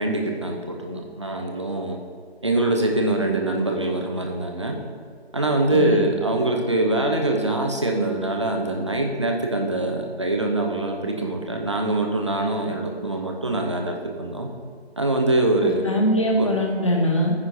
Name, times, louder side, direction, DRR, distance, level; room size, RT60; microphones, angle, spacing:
voice 1, 0.0-2.0 2.4-4.8 5.3-14.5 15.0-15.9 16.4-16.5, right 2 dB, 25° right, 2 dB, 0.8 m, -24 dB
voice 2, 5.7-6.0 15.6-17.3, equal, 30° left, 1 dB, 1.2 m, -22 dB
14.5 x 9.6 x 2.7 m, 2.1 s
figure-of-eight pair, 160°, 33 cm